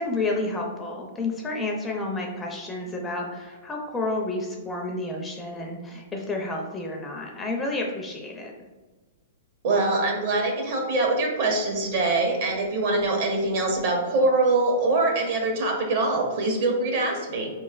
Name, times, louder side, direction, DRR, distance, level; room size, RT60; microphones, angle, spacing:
voice 1, 0.0-8.5, left 2 dB, 10° left, 0 dB, 0.4 m, -30 dB
voice 2, 9.6-17.5, right 2 dB, 50° right, 1 dB, 0.9 m, -23 dB
4.2 x 3.1 x 2.3 m, 1.2 s
hypercardioid pair, 150°, 0 cm